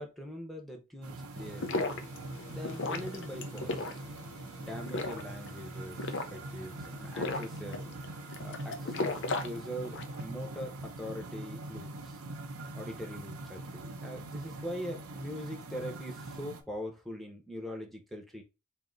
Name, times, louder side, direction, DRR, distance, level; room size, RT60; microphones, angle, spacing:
voice 1, 0.0-1.8 2.5-4.0 4.6-7.8 8.4-12.2 12.7-18.4, equal, ahead, 0.8 m, -42 dB
sound 1, 1.0-16.6, right 2 dB, 85° right, 0.8 m, -43 dB
sound 2, 1.4-10.2, left 3 dB, 55° left, 0.6 m, -37 dB
3.6 x 2.8 x 3.9 m
head